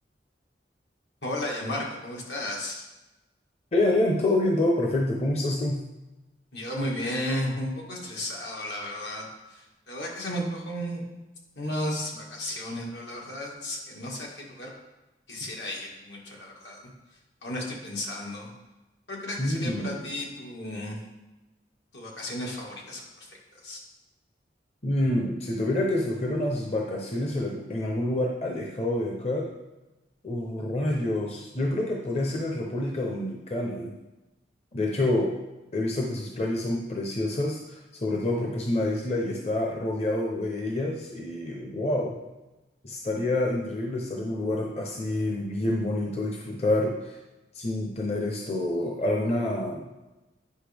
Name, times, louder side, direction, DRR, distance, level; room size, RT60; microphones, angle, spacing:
voice 1, 1.2-2.8 6.5-11.0 11.6-14.7 15.3-16.9 17.4-18.5 19.1-21.0 21.9-23.3 23.6-23.8, left 1 dB, 80° left, -2 dB, 1.9 m, -34 dB
voice 2, 3.7-5.8 19.4-20.0 24.8-29.5 30.2-34.0 34.7-35.3 35.7-42.2 42.8-47.2 47.5-49.8, left 1 dB, 35° left, -1 dB, 0.8 m, -27 dB
9.6 x 5.4 x 3.5 m, 1.0 s
head